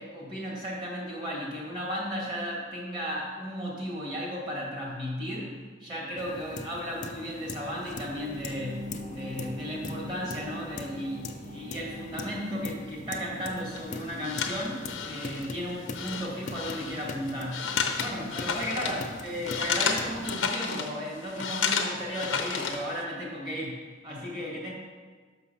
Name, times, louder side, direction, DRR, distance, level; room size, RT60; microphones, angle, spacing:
voice 1, 0.0-5.6 5.8-24.7, equal, 25° right, -5 dB, 2.1 m, -35 dB
sound 1, 6.2-20.3, left 3 dB, 40° left, 0.4 m, -41 dB
sound 2, 7.1-18.2 18.6-18.7, equal, 45° right, 1.5 m, -46 dB
sound 3, 13.7-23.0, left 5 dB, 80° left, 0.8 m, -32 dB
6.3 x 5.7 x 5.5 m, 1.5 s
head